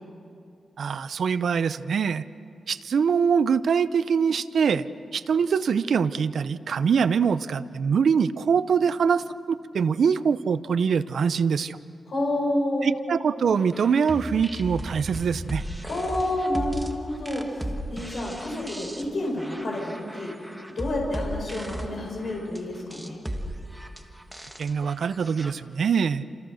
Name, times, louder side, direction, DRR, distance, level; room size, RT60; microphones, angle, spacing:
voice 1, 0.8-2.2 2.7-4.9 5.1-11.8 12.8-15.6 24.6-26.2, right 6 dB, 70° right, 13 dB, 0.7 m, -23 dB
voice 2, 12.1-12.9 15.9-23.2 26.2-26.3, left 1 dB, 55° left, -1 dB, 5.5 m, -29 dB
sound 1, 13.6-25.5, right 1 dB, 5° right, 1.5 m, -36 dB
29.5 x 28.0 x 6.4 m, 2.6 s
wide cardioid pair, 145°, 0 cm